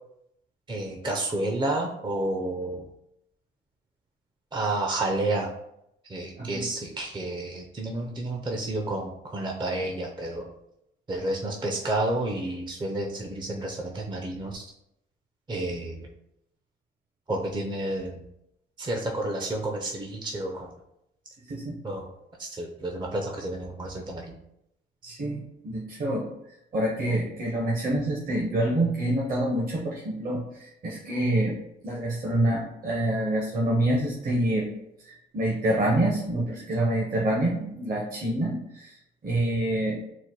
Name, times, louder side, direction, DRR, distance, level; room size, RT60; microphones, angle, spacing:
voice 1, 0.7-2.8 4.5-5.5 6.1-10.5 11.1-14.6 15.5-16.1 17.3-18.2 18.8-20.7 21.8-22.1 22.4-24.3, right 2 dB, 25° right, 1 dB, 0.5 m, -30 dB
voice 2, 25.0-26.3 26.7-31.5 31.8-34.7 35.0-39.0 39.2-40.0, right 1 dB, 45° right, -3 dB, 1.0 m, -26 dB
4.1 x 2.2 x 4.6 m, 0.79 s
cardioid pair, 90°, 20 cm